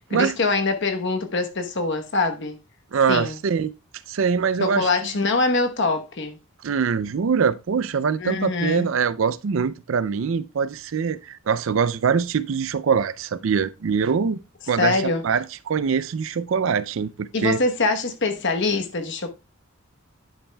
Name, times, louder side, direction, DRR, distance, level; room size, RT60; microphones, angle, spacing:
voice 1, 0.1-2.6 3.1-3.4 4.6-6.4 8.2-8.9 14.8-15.2 17.3-19.3, left 3 dB, 55° left, 1.0 m, -24 dB
voice 2, 2.9-3.7 4.1-4.9 6.6-14.4 14.7-17.6, right 6 dB, 60° right, 0.4 m, -23 dB
9.7 x 8.6 x 2.2 m
head